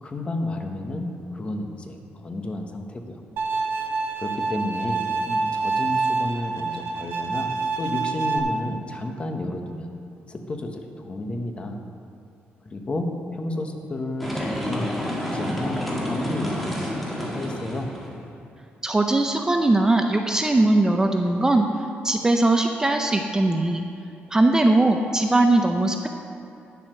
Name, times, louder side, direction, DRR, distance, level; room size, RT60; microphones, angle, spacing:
voice 1, 0.0-3.2 4.2-9.9 10.3-11.8 12.7-16.9 17.2-17.9, left 1 dB, 25° left, 4 dB, 1.1 m, -31 dB
Bowed string instrument, 3.4-8.4, right 4 dB, 85° right, 0.9 m, -26 dB
sound 1, 14.2-18.2, equal, 5° left, 1.7 m, -29 dB
voice 2, 18.8-21.7 22.0-23.8 24.3-26.1, right 2 dB, 15° right, 4 dB, 0.5 m, -20 dB
9.8 x 7.5 x 6.5 m, 2.7 s
cardioid pair, 135°, 4 cm